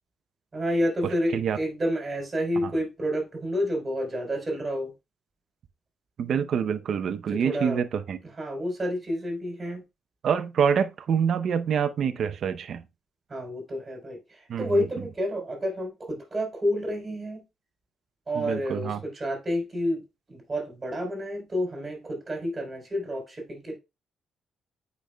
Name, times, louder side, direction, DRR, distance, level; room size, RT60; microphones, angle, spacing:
voice 1, 0.5-4.9 7.3-7.8 8.4-9.8 13.3-17.4 18.3-20.0 20.3-23.8, equal, 30° right, 3.5 m, -29 dB
voice 2, 1.0-1.6 2.6-2.7 6.2-8.2 10.2-12.8 14.5-14.9 18.4-19.0, right 7 dB, 60° right, 0.6 m, -26 dB
8.5 x 5.2 x 2.3 m
cardioid pair, 90°, 0 cm